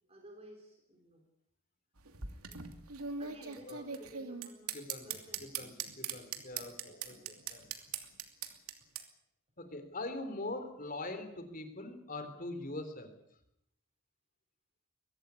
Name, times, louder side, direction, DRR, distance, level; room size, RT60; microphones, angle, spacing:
voice 1, 0.1-1.2 3.2-5.9 6.8-7.4, right 1 dB, 25° right, 3 dB, 4.0 m, -55 dB
sound 1, 2.0-9.0, right 7 dB, 80° right, 2.8 m, -40 dB
voice 2, 4.7-5.1 5.6-7.7 9.6-13.1, left 2 dB, 40° left, 9 dB, 3.6 m, -42 dB
sound 2, 5.0-8.4 8.7-8.8, left 1 dB, 70° left, 5.1 m, -61 dB
23.0 x 17.0 x 9.7 m, 0.76 s
head